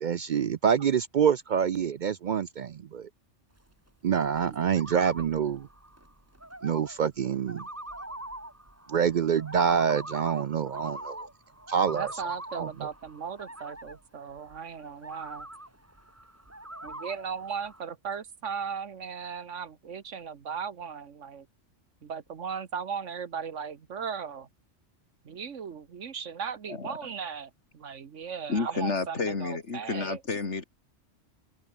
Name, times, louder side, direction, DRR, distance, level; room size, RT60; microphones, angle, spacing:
voice 1, 0.0-3.1 4.0-5.7 6.6-7.6 8.9-11.2 11.7-12.1 12.5-12.7, right 7 dB, 60° right, 0.5 m, -26 dB
sound 1, 3.6-17.8, right 1 dB, 10° right, 2.0 m, -43 dB
voice 2, 11.9-15.5 16.8-21.5 22.0-24.5 25.2-30.2, right 6 dB, 80° right, 1.6 m, -37 dB
voice 3, 28.5-30.6, left 4 dB, 70° left, 2.6 m, -30 dB
open air
omnidirectional pair, 1.2 m